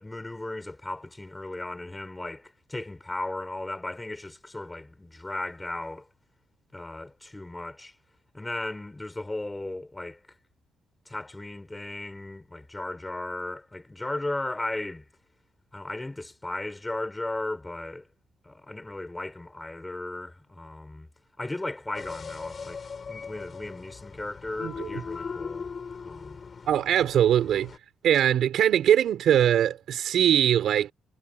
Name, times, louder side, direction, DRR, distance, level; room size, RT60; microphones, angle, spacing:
voice 1, 0.0-6.1 6.7-7.9 8.3-10.2 11.1-15.0 15.7-18.1 18.4-21.1 21.4-22.8 23.1-25.7 26.0-26.4, left 2 dB, 10° left, 4.1 m, -36 dB
sound 1, 21.9-27.8, left 5 dB, 35° left, 6.2 m, -39 dB
voice 2, 26.7-27.7 28.0-30.9, right 10 dB, 65° right, 5.3 m, -22 dB
cardioid pair, 145°, 0 cm